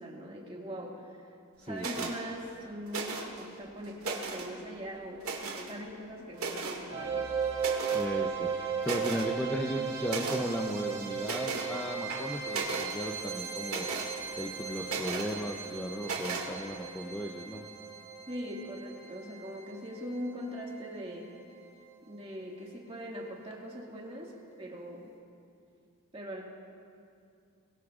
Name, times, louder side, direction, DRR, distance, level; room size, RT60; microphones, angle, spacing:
voice 1, 0.0-1.3 1.6-7.3 18.3-21.3 22.1-24.3 24.6-25.1 26.1-26.4, equal, 25° right, -2 dB, 1.9 m, -41 dB
voice 2, 1.6-2.1 7.9-17.7, equal, 10° left, 1 dB, 0.5 m, -36 dB
sound 1, 1.8-2.2 2.9-3.4 3.8-4.5 5.2-5.7 6.4-6.8 7.6-8.1 8.5-8.6 8.8-9.3 10.1-10.4 11.2-11.7 12.1-12.9 13.7-14.1 14.9-15.3 16.0-16.5, right 4 dB, 80° right, 2.0 m, -35 dB
sound 2, 6.9-21.9, right 6 dB, 50° right, 2.1 m, -37 dB
22.0 x 18.0 x 2.4 m, 2.4 s
head